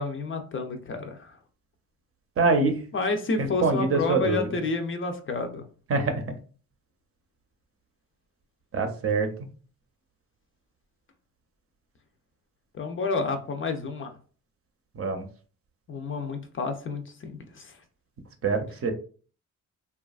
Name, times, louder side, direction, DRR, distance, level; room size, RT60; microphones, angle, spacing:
voice 1, 0.0-1.4 2.9-5.7 12.7-14.2 15.9-17.8, left 3 dB, 40° left, 6 dB, 0.5 m, -30 dB
voice 2, 2.4-2.8 3.6-4.4 5.9-6.2 8.7-9.3 15.0-15.2 18.4-18.9, right 3 dB, 45° right, 6 dB, 0.7 m, -24 dB
2.8 x 2.3 x 2.3 m, 0.39 s
cardioid pair, 90°, 32 cm